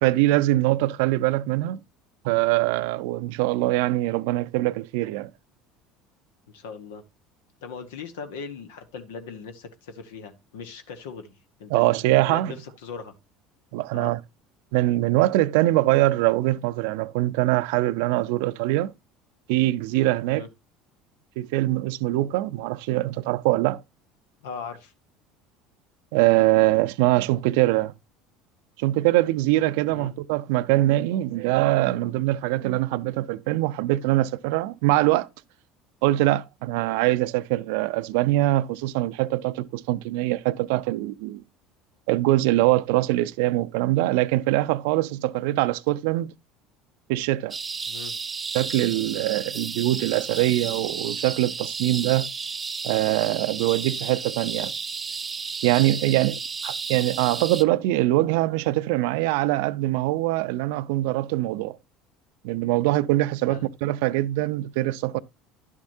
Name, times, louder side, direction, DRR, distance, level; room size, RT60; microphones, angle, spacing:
voice 1, 0.0-1.8 2.2-5.3 11.7-12.5 13.7-14.2 14.7-18.9 19.5-20.5 21.4-23.8 26.1-27.9 28.8-35.3 36.0-41.4 42.1-46.3 47.1-47.6 48.5-52.3 52.8-54.7 55.6-61.8 62.4-65.2, right 17 dB, 75° right, 0.5 m, -23 dB
voice 2, 6.5-7.0 7.6-13.1 13.9-14.1 20.3-20.5 24.4-24.9 29.9-30.1 47.9-48.1 56.1-56.3 63.5-63.7, left 5 dB, 80° left, 1.0 m, -39 dB
sound 1, 47.5-57.6, right 5 dB, 25° right, 0.6 m, -33 dB
10.5 x 7.2 x 2.6 m
hypercardioid pair, 80°, 0 cm